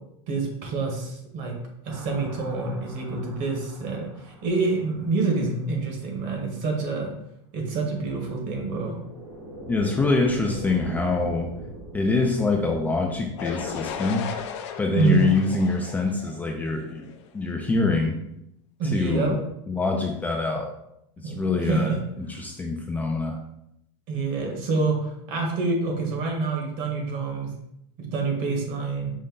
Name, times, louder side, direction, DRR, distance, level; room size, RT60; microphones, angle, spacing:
voice 1, 0.3-1.5 1.8-7.1 7.5-9.0 14.9-15.3 18.8-19.4 21.2-22.0 24.1-27.5 28.0-29.1, right 4 dB, 55° right, 2 dB, 1.2 m, -27 dB
sound 1, 1.8-5.8 8.8-15.9, right 1 dB, 80° right, 1.1 m, -43 dB
voice 2, 9.7-11.5 11.9-14.3 14.8-17.1 17.3-18.2 18.9-19.4 19.7-20.7 21.2-23.4, left 3 dB, 10° left, 1 dB, 0.3 m, -25 dB
sound 2, 13.4-17.3, left 7 dB, 75° left, 0.5 m, -36 dB
5.2 x 2.2 x 3.7 m, 0.81 s
supercardioid pair, 140°, 15 cm